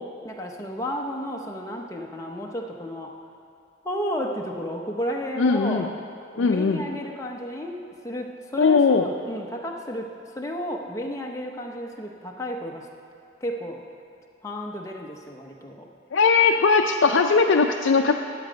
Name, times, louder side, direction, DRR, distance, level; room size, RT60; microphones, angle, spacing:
voice 1, 0.2-3.2 3.8-5.9 6.3-10.1 10.3-12.9 13.4-13.8 14.4-15.9, equal, 15° left, 1 dB, 0.7 m, -32 dB
voice 2, 5.4-5.8 6.4-6.8 8.6-9.1 16.1-18.1, left 4 dB, 75° left, 2 dB, 0.4 m, -19 dB
12.5 x 7.6 x 5.1 m, 2.5 s
head